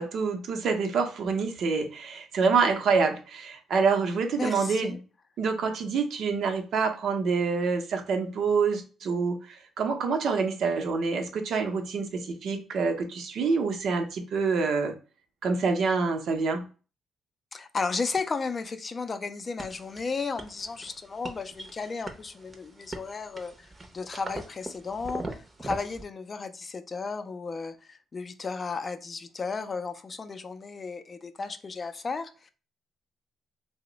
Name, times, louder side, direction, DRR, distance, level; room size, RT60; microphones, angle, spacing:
voice 1, 0.0-5.0 5.4-14.9 15.4-16.6, right 5 dB, 65° right, 0.6 m, -27 dB
voice 2, 4.4-5.0 17.5-23.7 23.9-32.5, left 4 dB, 35° left, 0.4 m, -34 dB
sound 1, 19.6-26.0, right 2 dB, 25° right, 0.6 m, -41 dB
2.9 x 2.1 x 3.8 m
cardioid pair, 90°, 0 cm